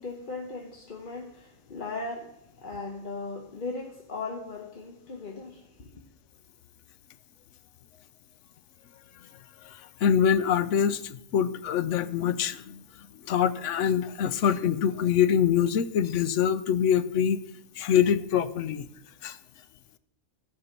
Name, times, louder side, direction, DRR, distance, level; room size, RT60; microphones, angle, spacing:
voice 1, 0.0-6.0, left 3 dB, 40° left, 1.1 m, -38 dB
voice 2, 10.0-12.8 13.3-17.5 17.8-18.9 19.2-19.4, left 8 dB, 70° left, 1.0 m, -24 dB
14.0 x 5.6 x 6.6 m
omnidirectional pair, 1.4 m